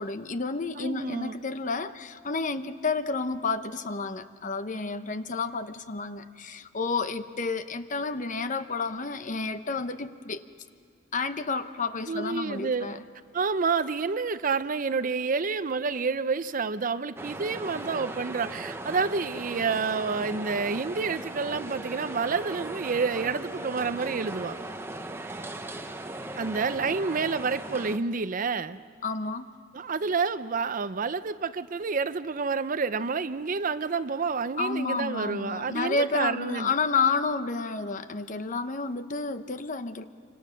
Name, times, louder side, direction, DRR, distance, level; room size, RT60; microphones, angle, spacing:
voice 1, 0.0-10.5 11.1-13.0 29.0-29.4 34.6-40.0, left 4 dB, 40° left, 10 dB, 0.8 m, -30 dB
voice 2, 0.8-1.4 12.1-13.0 13.3-24.6 26.4-28.8 29.7-36.7, right 4 dB, 45° right, 13 dB, 0.5 m, -29 dB
sound 1, 17.2-28.0, right 2 dB, 10° right, 0.9 m, -38 dB
27.5 x 25.5 x 6.4 m, 2.2 s
head